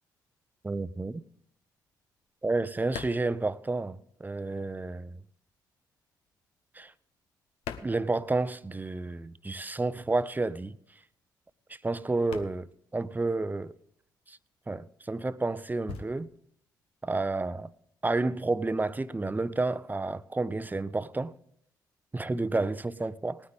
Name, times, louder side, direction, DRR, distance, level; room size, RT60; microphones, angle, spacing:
voice 1, 0.6-1.2 2.4-5.2 6.8-6.9 7.8-10.8 11.8-13.8 14.3-14.4 14.7-16.3 17.0-17.7 18.0-21.3 22.1-23.4, right 3 dB, 20° right, 0.6 m, -30 dB
sound 1, 1.8-4.5 4.7-8.9 9.1-17.9, left 7 dB, 70° left, 0.9 m, -47 dB
19.0 x 9.4 x 3.6 m
hypercardioid pair, 45°, 10 cm